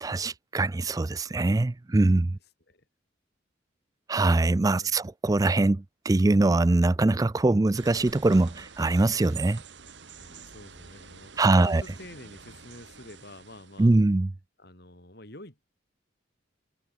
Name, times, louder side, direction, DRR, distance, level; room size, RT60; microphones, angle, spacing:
voice 1, 0.0-2.4 4.1-9.6 11.4-11.8 13.8-14.3, right 2 dB, 20° right, 0.3 m, -23 dB
voice 2, 4.7-5.0 10.2-14.0 14.6-15.8, left 1 dB, 55° left, 5.0 m, -48 dB
sound 1, 7.7-14.0, right 7 dB, 65° right, 1.8 m, -47 dB
head